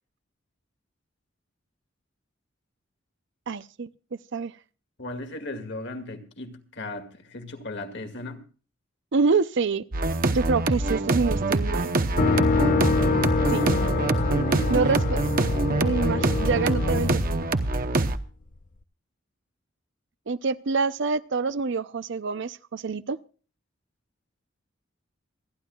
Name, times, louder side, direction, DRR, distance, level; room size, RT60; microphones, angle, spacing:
voice 1, 3.5-4.5 9.1-9.8 10.3-11.9 13.5-13.6 14.7-15.2 15.8-17.2 20.3-23.2, right 4 dB, 65° right, 0.6 m, -26 dB
voice 2, 5.0-8.5 13.5-15.0 15.3-15.8, left 1 dB, 60° left, 2.2 m, -37 dB
sound 1, 9.9-18.2, right 2 dB, 50° right, 0.9 m, -25 dB
sound 2, 12.2-18.1, left 4 dB, 40° left, 0.6 m, -26 dB
27.5 x 11.0 x 2.4 m
head